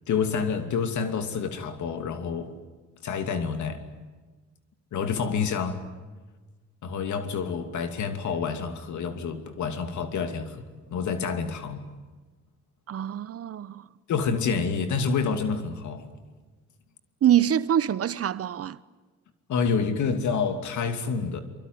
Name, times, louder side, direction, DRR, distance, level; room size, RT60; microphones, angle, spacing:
voice 1, 0.1-2.5 3.0-3.8 4.9-5.8 6.8-11.9 14.1-16.1 19.5-21.4, left 5 dB, 75° left, 2.7 m, -28 dB
voice 2, 12.9-13.8 17.2-18.8, right 10 dB, 50° right, 0.9 m, -24 dB
24.0 x 24.0 x 9.5 m
cardioid pair, 90°, 30 cm